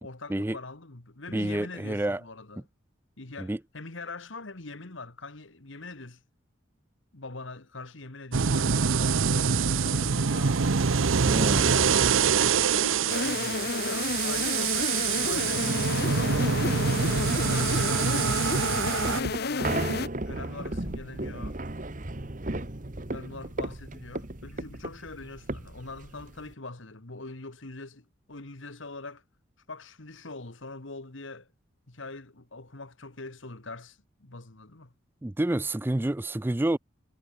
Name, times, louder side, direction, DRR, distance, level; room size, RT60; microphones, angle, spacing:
voice 1, 0.0-2.6 3.2-6.2 7.1-10.8 11.3-11.9 12.3-16.6 17.4-19.9 20.3-21.6 23.1-29.2 29.7-31.5 31.9-34.9, left 3 dB, 75° left, 1.9 m, -43 dB
voice 2, 1.3-2.2 3.4-3.6 11.3-11.8 35.2-36.8, right 1 dB, 10° right, 0.3 m, -28 dB
sound 1, 8.3-19.2, right 6 dB, 85° right, 0.8 m, -25 dB
sound 2, 13.1-20.1, left 3 dB, 50° left, 0.9 m, -31 dB
sound 3, 18.5-26.5, right 2 dB, 40° right, 1.3 m, -35 dB
head